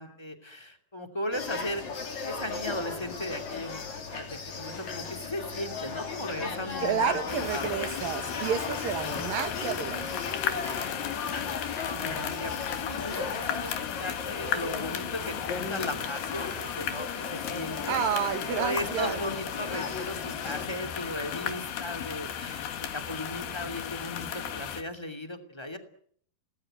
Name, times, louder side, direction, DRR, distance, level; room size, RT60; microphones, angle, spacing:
voice 1, 0.0-3.8 4.1-7.2 7.5-7.7 11.5-25.8, left 1 dB, 10° left, 5 dB, 2.0 m, -37 dB
sound 1, 1.3-20.7, left 4 dB, 50° left, 4.4 m, -37 dB
voice 2, 6.8-10.3 17.9-19.2, right 7 dB, 70° right, 9 dB, 3.5 m, -30 dB
sound 2, 7.3-24.8, left 9 dB, 80° left, 3.8 m, -35 dB
28.0 x 19.0 x 9.1 m, 0.64 s
omnidirectional pair, 4.4 m